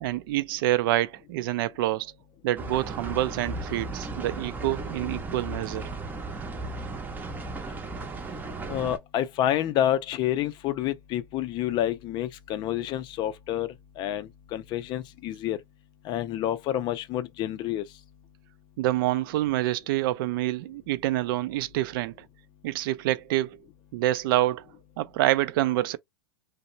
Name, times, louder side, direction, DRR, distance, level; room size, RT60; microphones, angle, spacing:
voice 1, 0.0-2.1 2.4-5.9 18.8-22.3 22.6-23.6 23.9-24.7 25.0-26.0, right 15 dB, 60° right, 0.4 m, -27 dB
sound 1, 2.6-9.0, right 2 dB, 15° right, 0.6 m, -36 dB
voice 2, 8.7-13.7 14.0-15.6 16.0-17.8, left 11 dB, 35° left, 0.4 m, -28 dB
2.8 x 2.1 x 2.6 m
hypercardioid pair, 125°, 13 cm